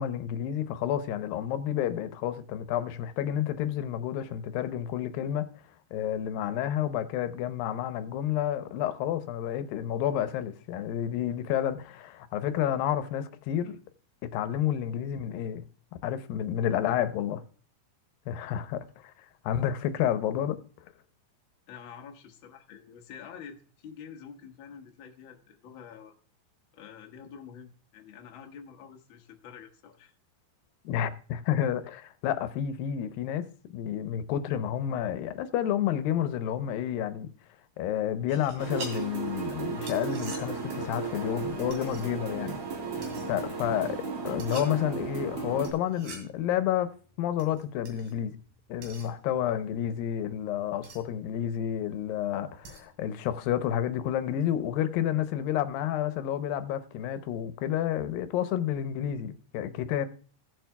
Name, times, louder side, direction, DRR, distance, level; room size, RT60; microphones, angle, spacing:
voice 1, 0.0-5.5 5.9-13.8 14.2-15.7 16.0-17.4 18.3-19.1 19.4-20.6 30.9-37.3 37.8-42.6 43.3-44.0 44.2-46.9 47.2-48.4 48.7-60.1, left 10 dB, 85° left, 2.4 m, -30 dB
voice 2, 21.7-26.1 26.7-30.1 42.9-43.3, left 7 dB, 60° left, 1.3 m, -47 dB
sound 1, 38.3-53.1, right 3 dB, 70° right, 4.0 m, -49 dB
sound 2, 38.6-45.7, right 5 dB, 50° right, 2.7 m, -35 dB
17.0 x 7.5 x 2.2 m
omnidirectional pair, 4.0 m